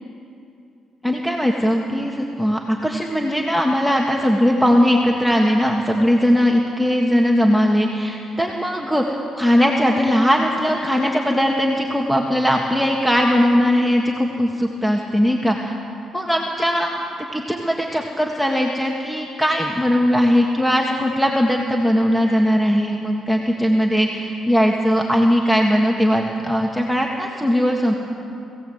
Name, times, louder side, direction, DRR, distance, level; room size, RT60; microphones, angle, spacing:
voice 1, 1.0-15.7 16.1-16.9 17.3-27.9, equal, ahead, 0 dB, 1.7 m, -19 dB
21.0 x 17.0 x 7.9 m, 2.7 s
cardioid pair, 90°, 0 cm